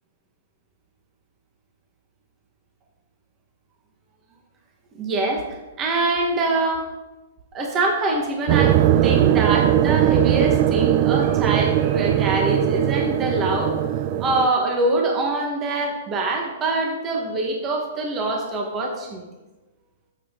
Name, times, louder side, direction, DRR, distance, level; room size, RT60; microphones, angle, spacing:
voice 1, 5.0-6.9 7.5-13.7 14.2-19.2, right 2 dB, 15° right, 1 dB, 1.2 m, -24 dB
sound 1, 8.5-14.5, right 11 dB, 35° right, 0.4 m, -19 dB
11.5 x 7.3 x 3.7 m, 1.1 s
hypercardioid pair, 170°, 0 cm